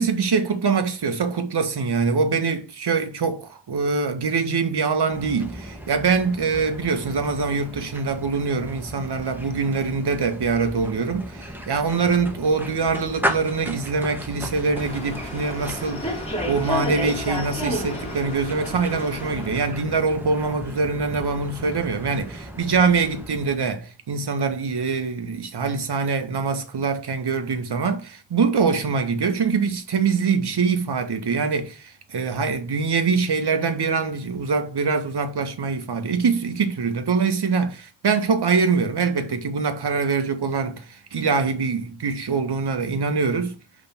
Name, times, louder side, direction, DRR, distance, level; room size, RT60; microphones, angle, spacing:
voice 1, 0.0-43.5, right 5 dB, 55° right, 1.6 m, -24 dB
sound 1, 5.1-23.7, equal, 5° right, 2.0 m, -36 dB
sound 2, 14.7-19.8, equal, 15° left, 3.5 m, -30 dB
5.3 x 4.0 x 5.9 m
supercardioid pair, 45°, 48 cm